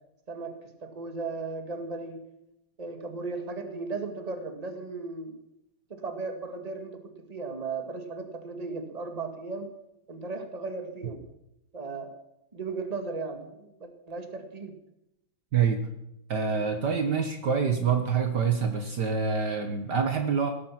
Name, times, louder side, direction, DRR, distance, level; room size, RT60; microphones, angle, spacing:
voice 1, 0.8-2.2 2.8-5.3 5.9-9.7 10.1-11.2 11.7-12.1 12.5-14.7, right 3 dB, 20° right, 6 dB, 2.0 m, -36 dB
voice 2, 16.3-20.5, right 6 dB, 55° right, 6 dB, 1.8 m, -26 dB
18.0 x 12.5 x 5.9 m, 0.84 s
omnidirectional pair, 2.3 m